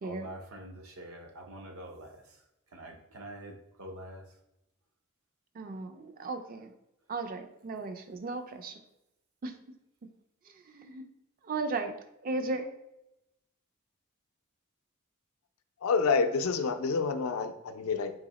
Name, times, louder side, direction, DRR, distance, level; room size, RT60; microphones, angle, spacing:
voice 1, 0.0-2.1 2.8-3.5 3.8-4.2, right 1 dB, 80° right, 3 dB, 0.7 m, -45 dB
voice 2, 5.6-6.7 7.1-8.8 9.4-9.5 10.7-11.1 11.5-11.9 12.2-12.7, right 3 dB, 40° right, 8 dB, 0.4 m, -35 dB
voice 3, 15.8-18.1, left 4 dB, 80° left, 7 dB, 0.4 m, -28 dB
3.8 x 2.7 x 4.0 m, 0.87 s
head